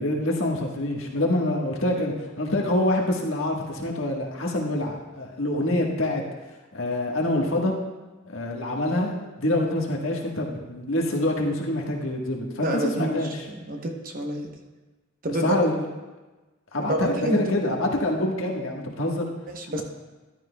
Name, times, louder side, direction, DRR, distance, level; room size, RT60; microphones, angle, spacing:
voice 1, 0.0-6.2 6.7-7.7 8.3-9.1 9.4-13.5 15.4-15.9 16.7-19.3, left 1 dB, 70° left, -1 dB, 1.5 m, -26 dB
voice 2, 12.6-13.3 13.7-14.5 15.2-15.6 16.8-17.4 19.5-19.8, right 1 dB, 40° right, 2 dB, 1.0 m, -28 dB
13.5 x 11.5 x 2.3 m, 1.2 s
head